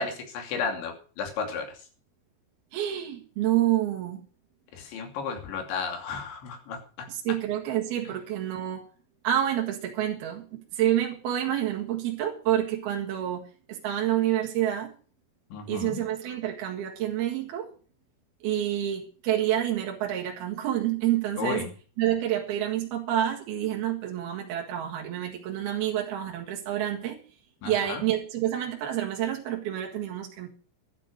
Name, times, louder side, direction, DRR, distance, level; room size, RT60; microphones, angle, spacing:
voice 1, 0.0-1.7 4.7-7.1 15.5-16.0 21.4-21.7 27.6-28.0, left 5 dB, 65° left, 5 dB, 4.8 m, -33 dB
voice 2, 2.7-4.2 7.1-8.9 9.2-14.9 15.7-17.7 18.4-21.7 22.0-27.2 27.6-30.5, right 12 dB, 60° right, 0 dB, 3.2 m, -28 dB
12.0 x 10.5 x 6.4 m, 0.40 s
omnidirectional pair, 5.8 m